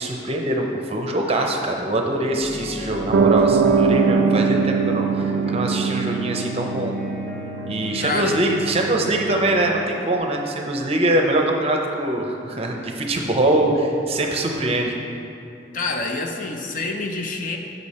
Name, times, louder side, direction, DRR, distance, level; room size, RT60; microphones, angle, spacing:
voice 1, 0.0-6.9 7.7-15.0, right 1 dB, 35° right, 1 dB, 0.6 m, -23 dB
sound 1, 2.4-10.2, left 1 dB, 5° left, 1.0 m, -36 dB
Piano, 3.1-9.7, right 5 dB, 70° right, 0.3 m, -22 dB
voice 2, 8.0-8.4 15.7-17.6, left 3 dB, 45° left, 3 dB, 0.6 m, -27 dB
8.2 x 5.4 x 4.2 m, 2.7 s
head